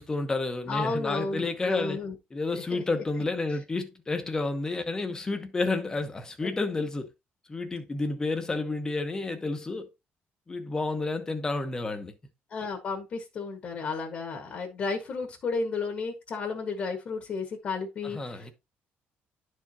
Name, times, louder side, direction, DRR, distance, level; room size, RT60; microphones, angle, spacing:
voice 1, 0.0-2.0 2.3-7.1 7.5-9.9 10.5-12.1 18.0-18.5, left 3 dB, 15° left, 0.9 m, -30 dB
voice 2, 0.7-2.1 2.7-2.8 6.4-6.5 12.5-18.5, left 4 dB, 40° left, 1.5 m, -33 dB
11.5 x 4.7 x 2.8 m
cardioid pair, 175°, 4 cm